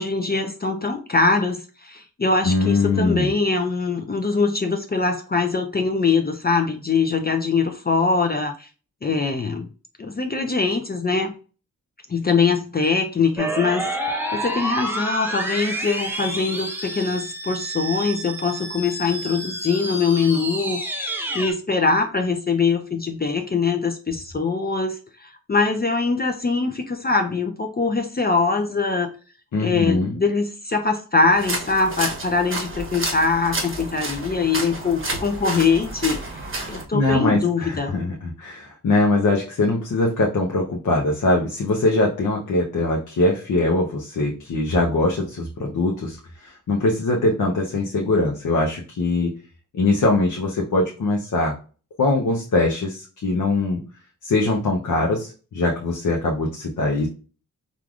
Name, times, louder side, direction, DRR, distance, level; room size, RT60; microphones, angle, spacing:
voice 1, 0.0-8.7 9.0-9.7 10.0-11.3 12.1-13.9 14.3-29.1 29.6-36.2 36.7-37.9, left 4 dB, 30° left, 4 dB, 0.4 m, -22 dB
voice 2, 2.4-3.3 29.5-30.1 36.6-49.3 49.7-51.5 52.0-53.8 54.2-57.1, left 2 dB, 60° left, 0 dB, 0.7 m, -22 dB
sound 1, 13.4-21.5, right 1 dB, 5° right, 0.8 m, -29 dB
sound 2, 31.3-36.8, right 2 dB, 35° right, 0.9 m, -30 dB
3.3 x 2.4 x 2.4 m, 0.36 s
cardioid pair, 45°, 34 cm